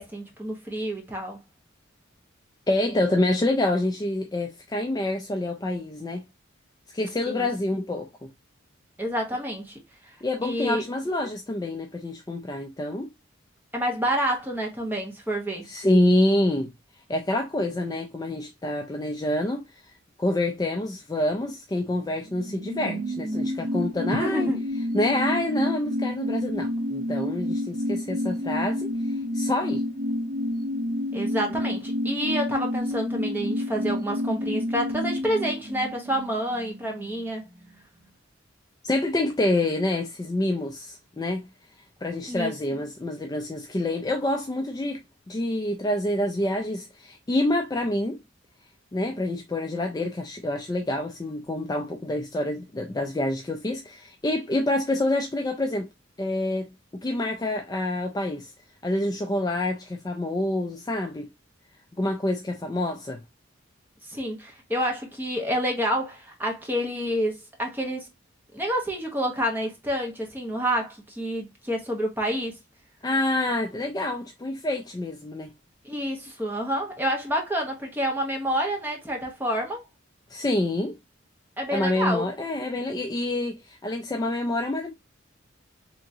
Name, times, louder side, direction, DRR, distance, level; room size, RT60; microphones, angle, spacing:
voice 1, 0.0-1.4 7.3-7.5 9.0-9.8 10.1-10.2 10.4-10.8 13.7-15.7 24.2-24.6 31.1-37.4 42.3-42.5 64.1-68.1 68.5-72.6 75.8-79.8 81.6-82.2, equal, 10° right, 0.9 m, -28 dB
voice 2, 2.7-6.2 6.9-8.3 10.2-13.1 15.7-16.7 17.1-19.6 20.2-24.5 24.9-28.9 29.3-29.8 38.8-41.5 42.0-45.0 45.3-48.2 48.9-55.9 56.2-58.5 58.8-61.3 62.0-63.2 73.0-75.5 80.3-81.0 81.7-84.9, left 1 dB, 20° left, 0.3 m, -27 dB
sound 1, 22.1-37.3 37.6-37.7, left 1 dB, 45° right, 0.6 m, -29 dB
3.5 x 3.0 x 2.6 m
head